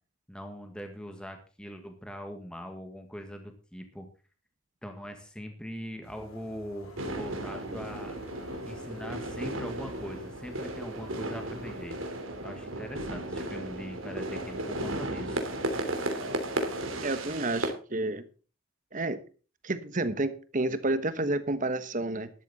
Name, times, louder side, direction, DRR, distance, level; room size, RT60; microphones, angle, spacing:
voice 1, 0.3-4.1 4.8-8.2 8.6-12.0 12.4-15.4, equal, 5° left, 5 dB, 1.6 m, -41 dB
sound 1, 6.0-12.2, left 1 dB, 85° left, 4.3 m, -51 dB
sound 2, 7.0-17.7, right 1 dB, 70° right, 2.9 m, -35 dB
voice 2, 17.0-18.2 18.9-19.2 19.6-22.3, right 2 dB, 40° right, 13 dB, 1.2 m, -30 dB
12.5 x 12.0 x 4.2 m, 0.36 s
head